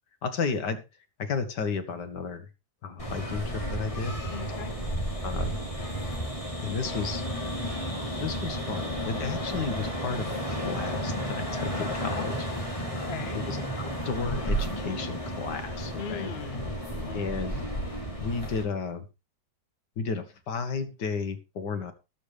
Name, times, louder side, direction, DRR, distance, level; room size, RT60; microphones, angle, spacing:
voice 1, 0.2-0.8 1.2-2.5 2.8-4.1 5.2-5.6 6.6-7.2 8.2-12.4 12.9-13.2 13.5-16.3 17.1-17.5 18.2-19.1 20.0-21.9, left 5 dB, 90° left, 10 dB, 2.0 m, -33 dB
sound 1, 3.0-18.6, equal, 20° left, 3.3 m, -32 dB
voice 2, 4.3-4.7 12.1-12.3 12.9-13.4 15.9-17.3, left 6 dB, 45° left, 9 dB, 1.1 m, -39 dB
19.5 x 6.8 x 3.3 m, 0.27 s
omnidirectional pair, 1.8 m